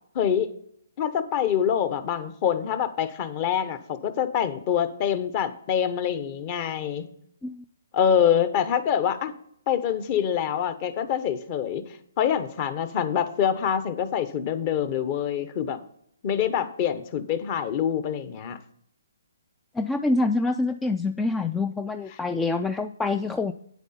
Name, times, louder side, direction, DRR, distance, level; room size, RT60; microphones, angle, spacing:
voice 1, 0.1-0.5 1.0-7.0 7.9-9.3 9.7-11.8 12.2-15.8 16.2-18.6, left 8 dB, 35° left, 12 dB, 0.9 m, -25 dB
voice 2, 19.7-23.5, left 3 dB, 5° left, 9 dB, 0.3 m, -26 dB
9.1 x 8.1 x 4.2 m, 0.69 s
hypercardioid pair, 150°, 0 cm